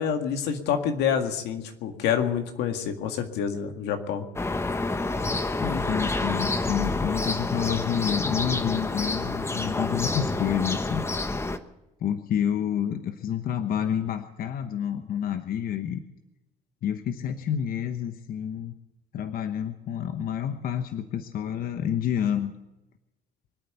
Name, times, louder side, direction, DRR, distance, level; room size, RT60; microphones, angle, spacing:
voice 1, 0.0-4.3, left 8 dB, 85° left, 6 dB, 2.0 m, -27 dB
sound 1, 4.4-11.6, left 2 dB, 15° left, 1.1 m, -28 dB
voice 2, 5.6-11.1 12.0-16.0 16.8-18.7 19.1-22.5, left 9 dB, 60° left, 9 dB, 1.1 m, -29 dB
24.0 x 8.8 x 6.8 m, 0.97 s
cardioid pair, 110°, 17 cm